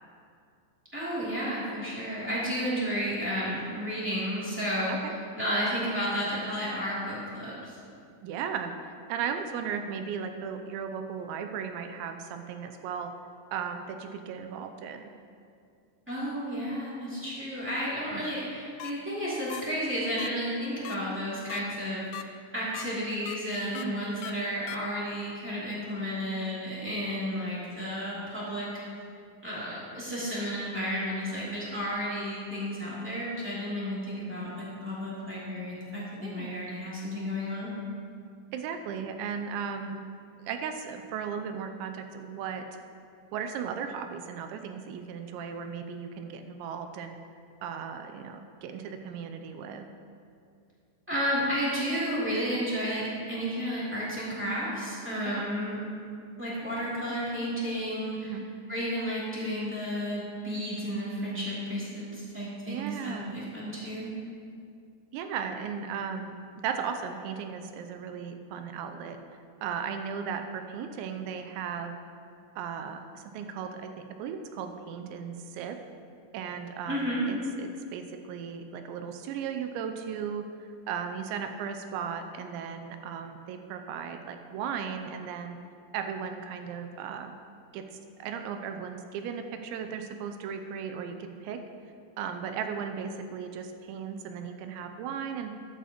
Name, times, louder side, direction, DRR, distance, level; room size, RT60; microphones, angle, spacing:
voice 1, 0.9-5.0 5.4-7.7 16.1-28.8 29.4-37.7 51.1-55.8 56.4-58.4 58.7-64.1 76.9-77.2, equal, 10° right, -9 dB, 0.8 m, -32 dB
voice 2, 8.2-8.7 9.1-13.1 13.5-15.1 18.1-18.2 23.7-24.0 36.2-36.6 38.5-40.0 40.4-42.7 43.3-47.2 47.6-49.9 55.4-55.5 58.2-58.4 62.7-63.4 65.1-69.2 69.6-72.0 72.6-73.9 74.2-75.8 76.3-85.6 85.9-87.4 87.7-87.8 88.2-91.6 92.2-95.5, right 7 dB, 85° right, 7 dB, 2.7 m, -36 dB
sound 1, 18.8-18.9 19.5-19.6 20.2-20.3 20.9-21.0 21.5-21.6 22.1-22.2 22.7-22.9 23.3-23.4 23.8-23.9 24.2-24.3 24.7-24.8, left 14 dB, 90° left, 2.5 m, -39 dB
13.0 x 11.0 x 3.0 m, 2.4 s
omnidirectional pair, 5.5 m